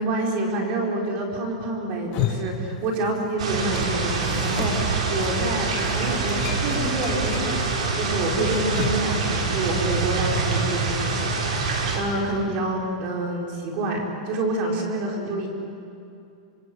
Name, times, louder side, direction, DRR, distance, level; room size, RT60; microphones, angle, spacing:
voice 1, 0.0-15.5, right 2 dB, 35° right, 0 dB, 4.7 m, -27 dB
sound 1, 1.9-3.3 3.6-9.1, left 10 dB, 35° left, 2.5 m, -34 dB
sound 2, 3.4-12.0, right 4 dB, 80° right, 6.0 m, -25 dB
28.0 x 26.0 x 7.8 m, 2.5 s
supercardioid pair, 165°, 4 cm